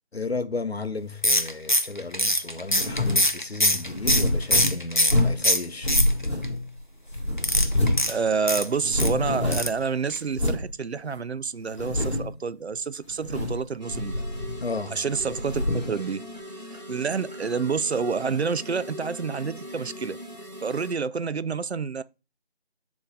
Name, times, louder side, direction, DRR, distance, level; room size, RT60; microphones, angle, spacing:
voice 1, 0.1-5.9 14.6-15.0, left 3 dB, 65° left, 0.9 m, -33 dB
sound 1, 1.2-5.2 5.4-6.4 7.4-9.1 9.5-9.8 10.1-10.2 10.5-10.6, equal, 45° left, 0.5 m, -23 dB
sound 2, 2.8-3.3 3.8-5.5 5.8-6.8 7.1-8.1 8.4-8.5 8.7-9.8 10.3-10.7 11.2-11.3 11.7-12.4 13.1-13.6 13.9-14.8 15.1-15.9, left 1 dB, 25° left, 2.5 m, -26 dB
voice 2, 8.1-14.1 14.9-16.2 16.6-20.2 20.6-22.0, right 5 dB, 75° right, 0.5 m, -28 dB
sound 3, 13.8-20.9, equal, 40° right, 1.0 m, -40 dB
7.1 x 3.1 x 5.2 m
figure-of-eight pair, 180°, 33 cm